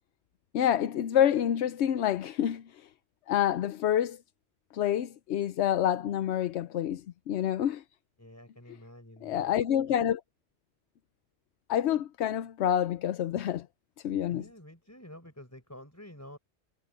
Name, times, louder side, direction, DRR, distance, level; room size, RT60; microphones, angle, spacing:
voice 1, 0.5-2.9 3.3-4.2 4.7-7.8 9.2-10.2 11.7-13.7 14.0-14.4, left 10 dB, 85° left, 0.9 m, -27 dB
voice 2, 8.2-9.5 9.9-10.0 14.3-16.4, left 1 dB, 15° left, 4.8 m, -49 dB
omnidirectional pair, 1.1 m